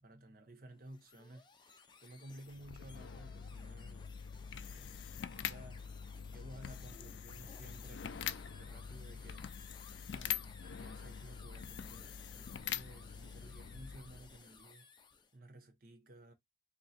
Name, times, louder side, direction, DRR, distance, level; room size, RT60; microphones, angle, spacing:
voice 1, 0.0-4.1 4.4-4.9 5.3-5.9 6.3-14.9 15.3-16.3, right 1 dB, 55° right, 0.9 m, -55 dB
sound 1, 0.7-15.4, left 5 dB, 25° left, 0.6 m, -60 dB
sound 2, 2.5-14.4, left 8 dB, 85° left, 0.4 m, -45 dB
3.1 x 2.8 x 4.1 m
head